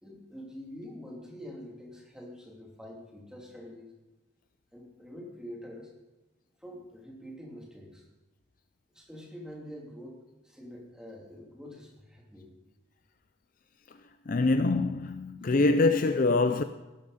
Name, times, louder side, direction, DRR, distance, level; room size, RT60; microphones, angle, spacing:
voice 1, 0.0-3.9 4.7-5.9 6.6-8.0 8.9-10.2 10.4-12.5 15.4-15.6, equal, 5° right, 3.0 m, -45 dB
voice 2, 14.3-16.6, left 3 dB, 40° left, 0.5 m, -24 dB
17.5 x 12.5 x 4.2 m
head